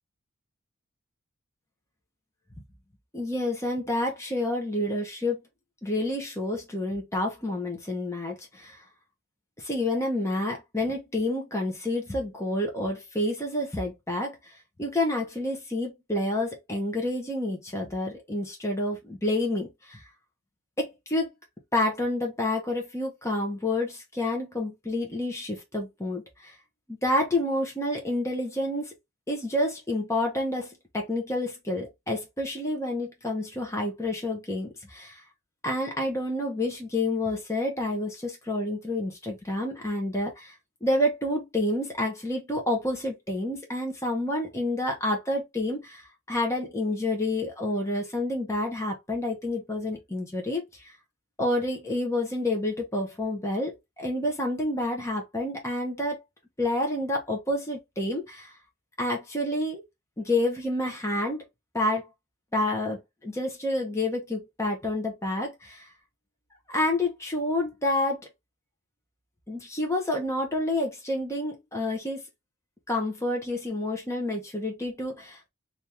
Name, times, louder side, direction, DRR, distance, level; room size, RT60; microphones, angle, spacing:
voice 1, 3.1-5.4 5.8-8.8 9.6-14.5 14.8-20.0 20.8-21.3 21.7-26.6 27.0-28.9 29.3-35.2 35.6-40.5 40.8-50.9 51.4-53.7 54.0-56.2 56.6-58.5 59.0-59.8 60.2-61.4 61.7-62.1 62.5-65.9 66.7-68.2 69.5-72.2 72.9-75.5, left 1 dB, 15° left, 0.8 m, -29 dB
2.9 x 2.6 x 3.3 m
head